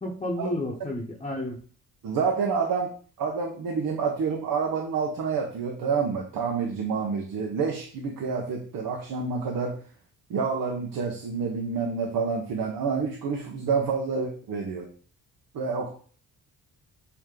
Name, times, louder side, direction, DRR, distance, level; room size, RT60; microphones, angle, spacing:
voice 1, 0.0-1.6, left 1 dB, 15° left, -5 dB, 1.0 m, -31 dB
voice 2, 2.0-2.9 3.2-9.8 10.3-14.9 15.5-15.9, right 5 dB, 85° right, 1 dB, 1.2 m, -28 dB
8.5 x 3.0 x 3.8 m, 0.43 s
wide cardioid pair, 170°, 34 cm